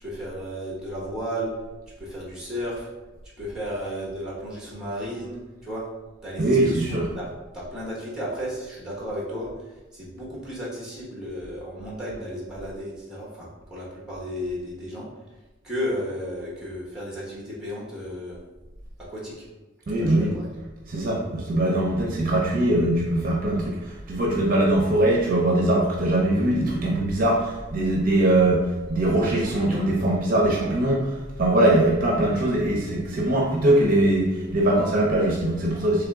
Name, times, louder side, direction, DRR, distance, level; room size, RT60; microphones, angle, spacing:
voice 1, 0.0-1.5 2.0-2.9 3.4-5.4 5.6-5.8 6.2-7.3 7.5-9.5 9.9-15.0 15.6-18.4 19.1-19.4 20.0-20.5 29.3-29.8, equal, 5° right, -6 dB, 1.1 m, -33 dB
voice 2, 6.4-7.1 19.9-20.3 20.9-36.1, right 1 dB, 45° right, -2 dB, 0.6 m, -22 dB
3.5 x 3.3 x 3.5 m, 1.1 s
head